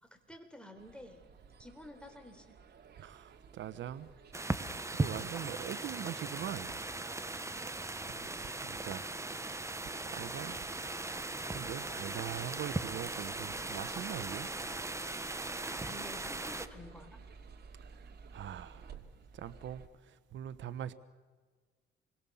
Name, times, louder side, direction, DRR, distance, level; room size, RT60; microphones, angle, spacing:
voice 1, 0.0-1.2 1.6-2.6 15.7-17.2, left 1 dB, 5° left, 6 dB, 4.2 m, -50 dB
sound 1, 0.7-19.9, right 5 dB, 55° right, 2.7 m, -56 dB
voice 2, 3.0-4.1 4.9-6.7 8.2-9.6 10.1-10.6 11.4-14.5 17.8-19.0 19.3-20.9, right 10 dB, 70° right, 13 dB, 1.0 m, -42 dB
sound 2, 4.3-16.7, right 2 dB, 15° right, 1.4 m, -38 dB
28.0 x 22.5 x 7.2 m, 1.4 s
cardioid pair, 90°, 20 cm